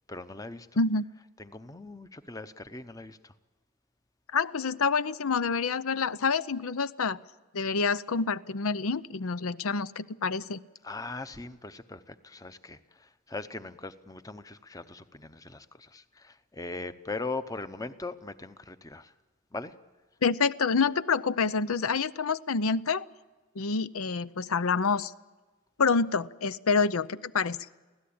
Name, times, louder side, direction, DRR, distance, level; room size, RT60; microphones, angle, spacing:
voice 1, 0.1-0.7 1.4-3.3 10.8-19.1 19.5-19.7, left 3 dB, 15° left, 12 dB, 0.8 m, -40 dB
voice 2, 4.3-7.2 7.5-10.6 20.2-23.1 23.6-25.1 25.8-27.6, left 4 dB, 85° left, 16 dB, 0.7 m, -27 dB
25.0 x 16.5 x 8.7 m, 1.3 s
head